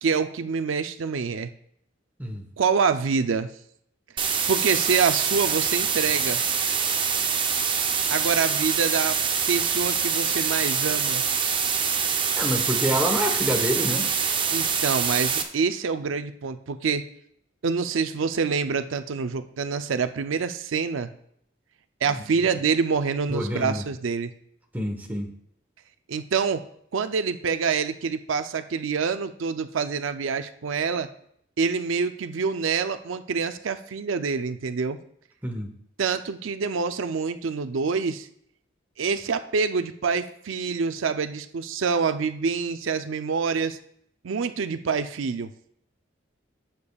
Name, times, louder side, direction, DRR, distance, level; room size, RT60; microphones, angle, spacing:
voice 1, 0.0-1.5 2.6-3.5 4.5-6.4 8.1-9.2 9.5-11.2 14.5-17.0 17.6-21.1 22.0-24.3 26.1-26.6 26.9-31.1 31.6-35.0 36.0-38.3 39.0-43.8 44.2-45.5, right 5 dB, 85° right, 10 dB, 0.5 m, -26 dB
sound 1, 4.2-15.4, right 6 dB, 25° right, 0.6 m, -25 dB
voice 2, 12.4-14.1 22.0-22.5 23.3-23.8 24.7-25.3 35.4-35.7, equal, 10° right, 2 dB, 1.0 m, -27 dB
15.0 x 6.8 x 2.3 m, 0.69 s
head